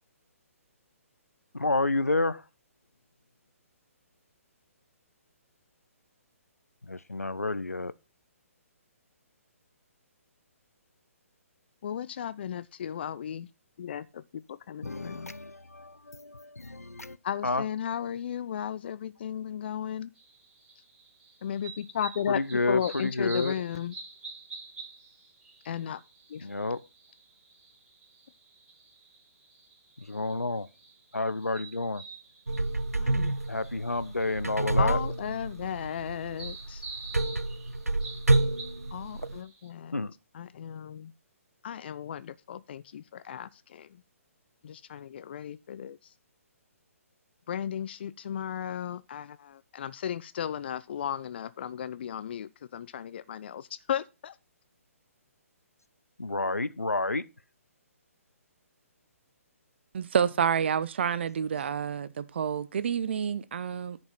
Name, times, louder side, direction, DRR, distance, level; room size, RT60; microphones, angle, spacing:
voice 1, 1.5-2.5 6.8-7.9 14.8-17.2 17.4-17.7 22.3-23.6 26.4-26.9 30.0-30.7 31.1-32.0 33.5-35.0 39.9-40.1 56.2-57.3, left 2 dB, 85° left, 0.6 m, -30 dB
voice 2, 11.8-13.5 13.8-15.3 17.2-20.1 21.4-22.4 22.7-23.9 25.6-26.0 26.3-26.5 33.0-33.3 34.8-36.8 38.9-40.0 40.4-41.1 41.6-43.9 44.6-46.0 47.5-54.3, left 9 dB, 45° left, 0.5 m, -35 dB
sound 1, 20.2-39.7, right 4 dB, 10° right, 5.4 m, -48 dB
sound 2, 32.5-39.4, right 2 dB, 90° right, 0.5 m, -29 dB
voice 3, 59.9-64.0, right 7 dB, 50° right, 0.6 m, -28 dB
10.5 x 5.4 x 5.8 m
figure-of-eight pair, 130°, 8 cm